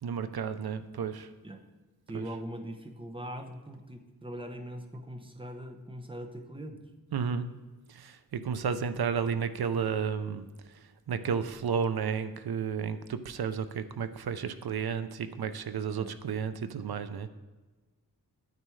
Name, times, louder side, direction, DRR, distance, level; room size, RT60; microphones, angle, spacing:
voice 1, 0.0-1.3 2.1-2.2 7.1-7.5 7.9-10.5 11.1-17.3, right 6 dB, 75° right, 11 dB, 0.6 m, -32 dB
voice 2, 2.1-6.8 15.9-16.1, right 1 dB, 15° right, 4 dB, 0.9 m, -41 dB
9.4 x 9.1 x 3.2 m, 1.3 s
wide cardioid pair, 100°, 38 cm